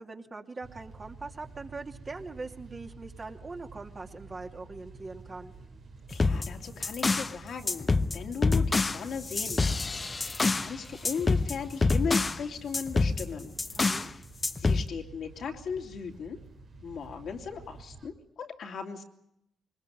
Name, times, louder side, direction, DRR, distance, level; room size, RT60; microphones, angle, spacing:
voice 1, 0.0-5.5 13.8-14.1, right 3 dB, 40° right, 3 dB, 2.7 m, -42 dB
sound 1, 0.6-18.1, right 3 dB, 65° right, 2.9 m, -50 dB
voice 2, 6.1-13.5 14.1-14.2 14.6-16.4 16.8-19.0, left 6 dB, 70° left, 2 dB, 2.7 m, -37 dB
sound 2, 6.1-7.3 7.7-10.7 11.0-12.4 12.7-14.1 14.4-14.9, left 3 dB, 35° left, 0.8 m, -27 dB
21.5 x 20.5 x 9.3 m, 0.78 s
supercardioid pair, 55°, 0 cm